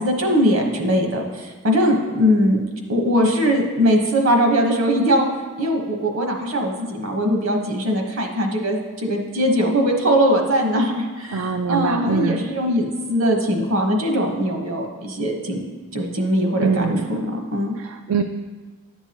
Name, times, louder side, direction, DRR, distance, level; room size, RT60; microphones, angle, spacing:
voice 1, 0.0-2.6 2.9-5.3 5.6-15.6 15.9-17.7, equal, 65° right, 2 dB, 1.1 m, -21 dB
voice 2, 11.3-12.5 16.6-17.1 17.8-18.2, right 5 dB, 80° right, 7 dB, 0.4 m, -23 dB
10.5 x 6.9 x 2.9 m, 1.4 s
head